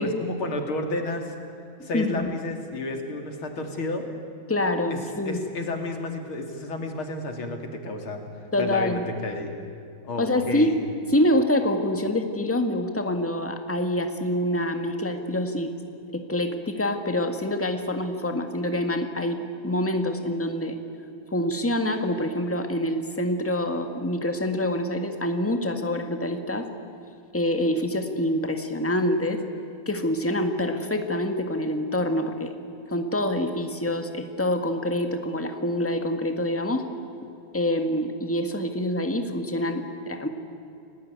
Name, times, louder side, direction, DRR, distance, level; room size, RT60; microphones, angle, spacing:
voice 1, 0.0-1.3 1.8-4.1 4.9-5.0 5.3-8.2 8.6-9.6 10.0-10.8, left 2 dB, 85° left, 4 dB, 3.5 m, -31 dB
voice 2, 1.9-2.3 4.5-5.4 8.5-9.0 10.2-10.8 11.1-15.7 16.1-20.8 21.3-26.7 27.3-29.4 29.8-32.5 32.9-36.8 37.5-40.3, left 1 dB, 5° left, 5 dB, 1.7 m, -26 dB
30.0 x 20.0 x 9.5 m, 2.6 s
omnidirectional pair, 2.2 m